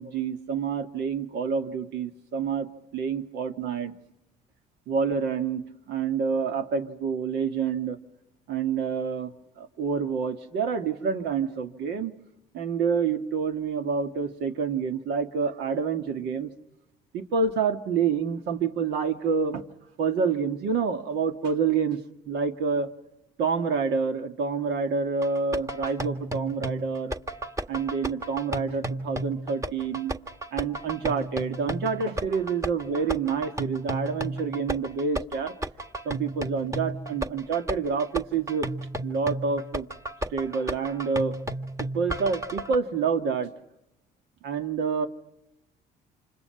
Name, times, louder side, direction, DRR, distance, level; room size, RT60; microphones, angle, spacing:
voice 1, 0.0-3.9 4.9-8.0 8.5-12.1 12.5-16.5 17.1-19.6 20.0-22.0 22.3-22.9 23.4-27.1 27.7-30.1 30.5-35.5 36.0-38.7 39.0-39.9 40.3-41.4 41.9-43.5 44.4-45.1, right 5 dB, 80° right, 8 dB, 2.1 m, -28 dB
sound 1, 25.2-42.8, right 1 dB, 20° right, 1.7 m, -33 dB
29.0 x 27.5 x 5.8 m, 0.84 s
cardioid pair, 110°, 17 cm